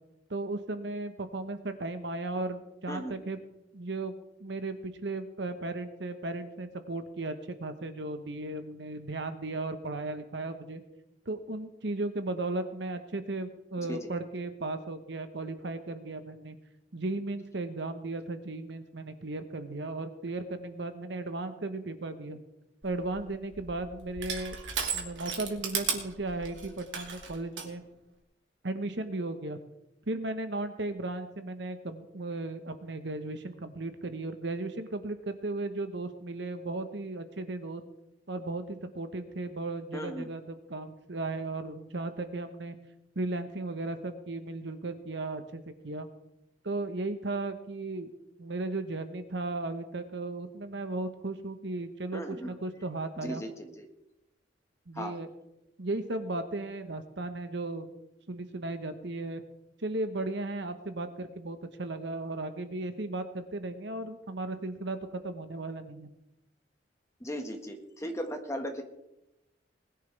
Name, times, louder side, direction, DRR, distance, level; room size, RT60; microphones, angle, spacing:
voice 1, 0.3-3.4 3.7-4.1 4.4-10.8 11.3-16.6 16.9-22.4 22.8-24.6 24.9-27.8 28.6-29.6 30.1-37.8 38.3-42.8 43.1-46.1 46.6-48.1 48.4-53.4 54.9-55.3 55.8-57.9 58.3-59.4 59.8-66.1, right 2 dB, 70° right, 9 dB, 1.2 m, -36 dB
Crushing, 22.8-27.7, right 6 dB, 90° right, 2.2 m, -36 dB
voice 2, 39.9-40.3 52.1-52.5 53.2-53.9 54.9-55.2 67.2-68.8, equal, 15° left, 4 dB, 1.6 m, -37 dB
20.5 x 10.5 x 3.4 m, 0.89 s
head